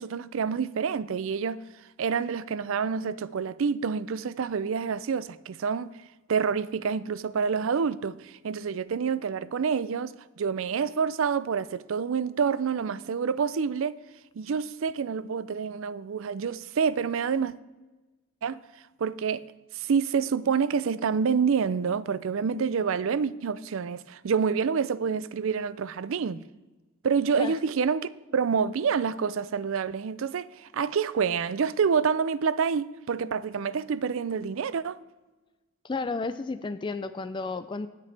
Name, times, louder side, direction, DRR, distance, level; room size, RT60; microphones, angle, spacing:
voice 1, 0.0-1.6 2.0-5.9 6.3-10.1 10.4-14.0 14.4-17.5 18.4-18.6 19.0-19.4 19.7-26.4 27.0-35.0, right 6 dB, 65° right, 0.4 m, -27 dB
voice 2, 35.8-37.9, left 3 dB, 20° left, 0.3 m, -32 dB
18.5 x 6.7 x 3.3 m
head